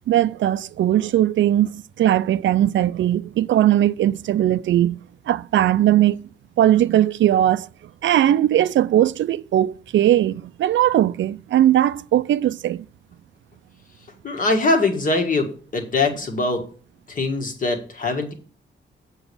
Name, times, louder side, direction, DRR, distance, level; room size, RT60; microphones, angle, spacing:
voice 1, 0.1-5.0 5.3-6.2 6.6-7.7 8.0-12.8, right 12 dB, 80° right, 0.4 m, -19 dB
voice 2, 14.2-15.5 15.7-16.6 17.1-18.3, left 3 dB, 45° left, 1.7 m, -22 dB
8.0 x 4.9 x 6.9 m
wide cardioid pair, 165°, 19 cm